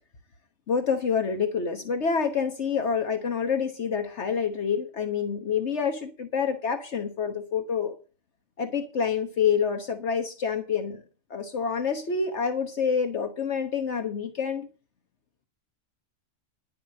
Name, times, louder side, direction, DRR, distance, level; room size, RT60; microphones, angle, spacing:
voice 1, 0.7-7.9 8.6-11.0 11.3-14.7, left 6 dB, 65° left, 6 dB, 1.5 m, -27 dB
11.5 x 7.7 x 6.5 m, 0.35 s
omnidirectional pair, 1.3 m